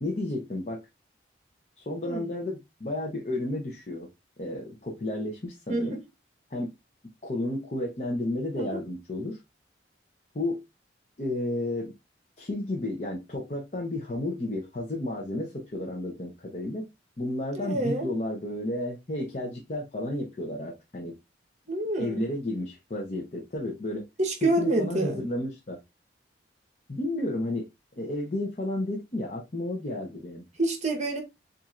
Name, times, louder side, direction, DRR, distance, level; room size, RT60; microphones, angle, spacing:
voice 1, 0.0-0.8 1.8-4.1 4.4-6.0 6.5-6.7 7.2-9.4 10.3-10.6 11.2-11.9 12.4-16.9 17.2-21.2 22.0-24.1 24.4-25.8 26.9-27.7 28.0-30.4, left 1 dB, 40° left, 0.8 m, -32 dB
voice 2, 5.7-6.0 8.6-8.8 17.5-18.1 21.7-22.3 24.2-25.3 30.6-31.2, right 2 dB, 40° right, 1.1 m, -27 dB
7.2 x 2.6 x 2.5 m
head